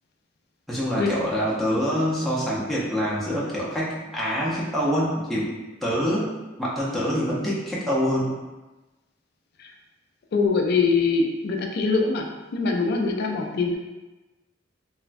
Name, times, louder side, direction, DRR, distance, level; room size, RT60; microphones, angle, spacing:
voice 1, 0.7-5.5 5.8-6.3 6.6-8.3, equal, ahead, -8 dB, 0.5 m, -25 dB
voice 2, 10.3-12.3 12.5-13.8, left 4 dB, 55° left, 2 dB, 0.4 m, -23 dB
3.1 x 2.1 x 2.5 m, 1.1 s
head